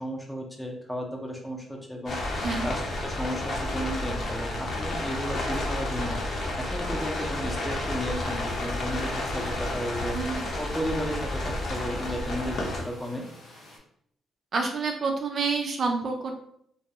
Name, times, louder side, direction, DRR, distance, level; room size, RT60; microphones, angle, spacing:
voice 1, 0.0-13.3, equal, 5° left, 0 dB, 0.5 m, -34 dB
sound 1, 2.1-12.8, left 1 dB, 55° left, 0.7 m, -31 dB
sound 2, 8.2-13.8, left 1 dB, 80° left, 1.0 m, -50 dB
voice 2, 14.5-16.4, right 4 dB, 50° right, 3 dB, 0.4 m, -28 dB
2.3 x 2.2 x 2.7 m, 0.68 s
cardioid pair, 90°, 0 cm